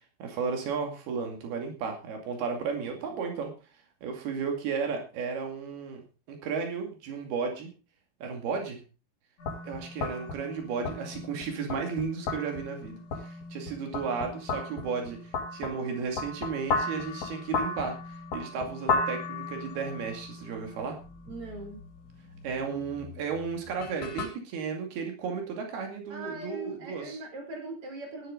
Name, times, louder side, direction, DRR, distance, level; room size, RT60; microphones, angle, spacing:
voice 1, 0.2-3.5 4.0-6.0 6.3-7.7 8.2-8.8 9.6-21.0 22.4-27.2, right 5 dB, 90° right, 3 dB, 4.4 m, -34 dB
sound 1, 9.4-24.3, left 3 dB, 50° left, 4.4 m, -36 dB
voice 2, 21.3-21.9 26.1-28.3, right 2 dB, 35° right, 3 dB, 5.1 m, -40 dB
15.0 x 11.5 x 3.9 m, 0.32 s
omnidirectional pair, 4.4 m